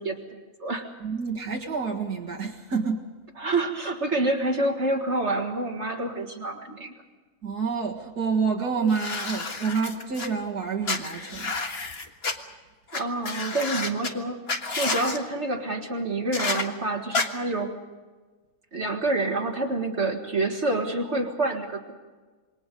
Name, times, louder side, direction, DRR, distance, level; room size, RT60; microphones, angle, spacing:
voice 1, 0.0-0.9 3.4-6.9 12.9-14.4 14.8-17.8 18.7-21.9, right 2 dB, 45° right, 3 dB, 2.0 m, -27 dB
voice 2, 1.0-3.0 7.4-11.5, right 5 dB, 75° right, -1 dB, 2.4 m, -28 dB
sound 1, 8.9-10.3 10.8-12.3 12.9-13.0 13.2-14.1 14.5-15.2 16.3-16.6 17.1-17.2, left 3 dB, 40° left, 1.7 m, -30 dB
27.5 x 22.5 x 5.3 m, 1.3 s
omnidirectional pair, 1.7 m